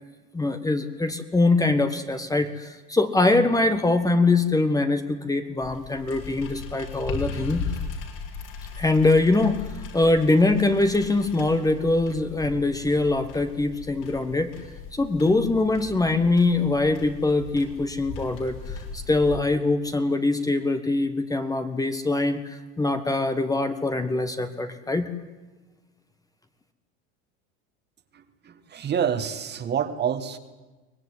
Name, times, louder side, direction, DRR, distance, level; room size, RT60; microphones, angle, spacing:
voice 1, 0.3-7.6 8.8-9.6 9.9-14.5 14.9-25.1, left 2 dB, 10° left, 8 dB, 1.4 m, -23 dB
sound 1, 5.6-19.4, left 4 dB, 65° left, 6.6 m, -38 dB
voice 2, 28.1-30.4, right 8 dB, 30° right, 9 dB, 1.8 m, -28 dB
24.0 x 18.5 x 9.8 m, 1.2 s
supercardioid pair, 130°, 34 cm